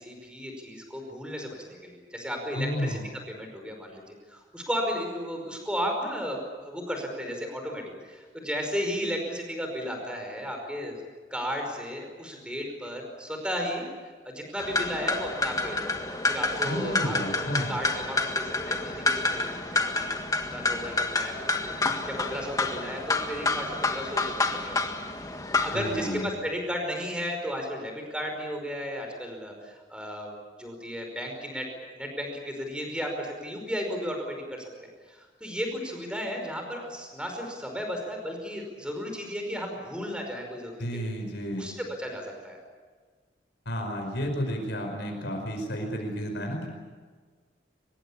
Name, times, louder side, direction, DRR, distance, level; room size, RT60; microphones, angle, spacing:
voice 1, 0.0-3.0 3.3-4.0 4.3-11.0 11.3-13.8 14.2-15.9 16.3-17.1 17.7-20.2 20.4-25.0 25.6-30.3 30.6-31.7 32.0-34.7 35.1-40.8 41.6-42.6, equal, 5° right, 3 dB, 5.1 m, -34 dB
voice 2, 2.5-3.0 16.6-17.7 25.7-26.3 40.8-41.6 43.6-46.7, equal, 60° left, 3 dB, 5.1 m, -31 dB
sound 1, 14.6-26.2, left 2 dB, 20° left, 1.8 m, -29 dB
24.5 x 22.0 x 8.6 m, 1.5 s
head